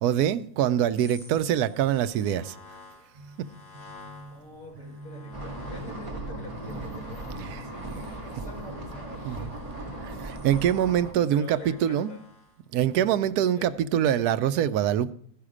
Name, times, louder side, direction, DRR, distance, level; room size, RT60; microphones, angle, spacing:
voice 1, 0.0-2.6 9.3-9.4 10.0-12.1 12.7-15.1, right 10 dB, 80° right, 1.1 m, -24 dB
sound 1, 0.9-6.1 6.3-13.5 13.8-13.9, left 3 dB, 35° left, 3.9 m, -53 dB
sound 2, 3.1-11.3, right 2 dB, 40° right, 0.5 m, -46 dB
voice 2, 4.3-9.6 11.2-12.3 13.5-13.9, left 1 dB, 60° left, 2.4 m, -45 dB
sound 3, 5.3-11.1, right 1 dB, 20° right, 1.9 m, -38 dB
15.5 x 5.7 x 4.9 m
omnidirectional pair, 1.6 m